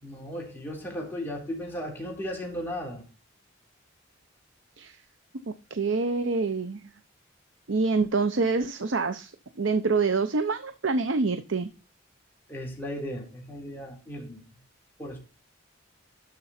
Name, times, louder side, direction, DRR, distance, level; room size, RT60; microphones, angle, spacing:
voice 1, 0.0-3.1 12.5-14.4 15.0-15.2, equal, 10° left, -1 dB, 3.7 m, -36 dB
voice 2, 5.5-6.8 7.7-9.3 9.6-11.7, right 4 dB, 70° right, 10 dB, 0.7 m, -26 dB
12.5 x 5.2 x 4.3 m, 0.32 s
head